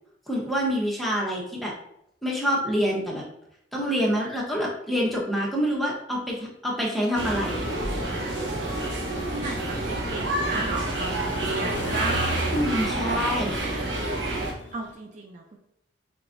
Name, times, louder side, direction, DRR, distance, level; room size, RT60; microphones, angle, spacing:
voice 1, 0.3-1.7 2.2-3.2 3.7-7.6 12.5-13.6, equal, ahead, -4 dB, 1.0 m, -26 dB
sound 1, 7.1-14.5, right 1 dB, 80° right, 1.0 m, -28 dB
sound 2, 8.7-14.9, left 1 dB, 70° left, 0.5 m, -38 dB
voice 2, 9.3-12.2 14.7-15.6, right 3 dB, 40° right, 1 dB, 0.5 m, -34 dB
4.8 x 3.4 x 2.6 m, 0.77 s
head